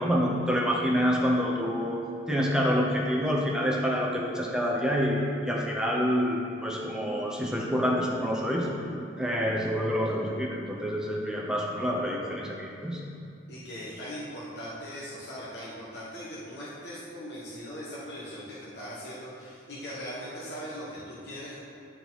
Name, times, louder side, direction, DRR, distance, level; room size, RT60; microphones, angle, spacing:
voice 1, 0.0-2.0 2.3-8.7 9.2-13.0, equal, 5° right, -3 dB, 0.8 m, -27 dB
voice 2, 13.5-21.7, equal, 60° left, -7 dB, 1.3 m, -40 dB
11.0 x 4.4 x 4.1 m, 2.5 s
head